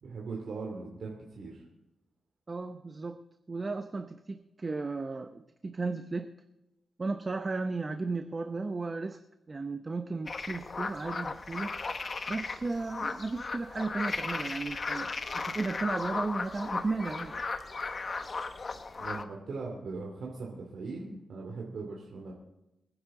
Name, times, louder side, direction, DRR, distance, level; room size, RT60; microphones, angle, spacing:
voice 1, 0.0-1.6 19.0-22.3, right 4 dB, 70° right, -1 dB, 2.6 m, -40 dB
voice 2, 2.5-3.2 3.5-6.3 7.0-9.2 9.5-11.7 12.3-17.3, right 3 dB, 35° right, 8 dB, 0.7 m, -35 dB
sound 1, 10.3-19.2, left 4 dB, 40° left, 1.1 m, -36 dB
26.5 x 10.0 x 3.8 m, 0.94 s
cardioid pair, 95°, 0 cm